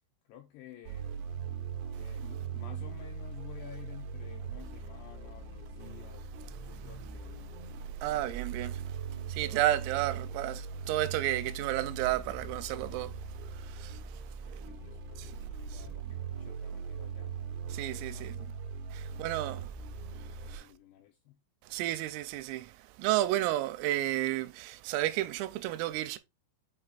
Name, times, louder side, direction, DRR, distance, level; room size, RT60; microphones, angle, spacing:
voice 1, 0.3-1.3 2.0-7.5 8.0-8.5 9.1-9.9 10.2-10.8 14.1-17.4 17.9-18.5 19.1-19.6 20.4-21.4, left 12 dB, 90° left, 2.5 m, -53 dB
sound 1, 0.8-20.6, right 6 dB, 70° right, 2.7 m, -40 dB
sound 2, 5.9-9.4, left 2 dB, 60° left, 3.0 m, -56 dB
voice 2, 7.8-14.3 15.2-15.4 15.7-15.9 17.7-18.5 18.9-19.7 20.1-20.7 21.6-26.2, right 14 dB, 90° right, 3.3 m, -33 dB
8.9 x 3.3 x 3.9 m
omnidirectional pair, 6.0 m